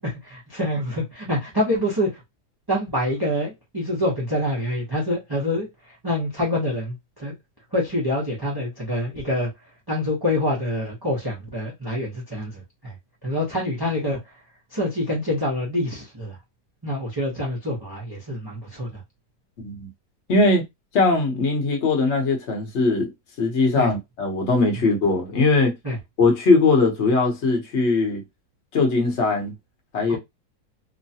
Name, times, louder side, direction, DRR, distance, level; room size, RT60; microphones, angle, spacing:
voice 1, 0.0-2.2 2.7-5.7 6.0-7.3 7.7-9.5 9.9-12.9 13.2-14.2 14.7-16.4 16.8-19.0 23.8-23.9 25.8-26.0 30.1-30.2, left 1 dB, 25° right, 0.5 m, -26 dB
voice 2, 19.6-19.9 20.3-20.6 20.9-23.1 23.4-25.7 26.2-28.2 28.7-29.5 29.9-30.2, left 3 dB, 50° left, 1.0 m, -20 dB
3.1 x 2.2 x 2.7 m
omnidirectional pair, 1.9 m